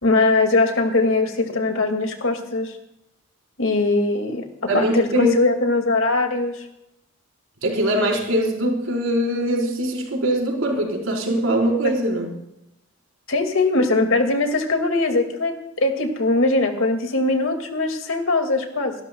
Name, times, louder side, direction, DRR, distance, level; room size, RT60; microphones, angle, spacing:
voice 1, 0.0-2.8 3.6-4.4 4.7-6.6 13.3-18.9, left 2 dB, 70° left, 4 dB, 2.2 m, -21 dB
voice 2, 4.7-5.3 7.6-12.4, right 1 dB, 70° right, -1 dB, 4.4 m, -22 dB
28.0 x 13.0 x 2.3 m, 0.87 s
head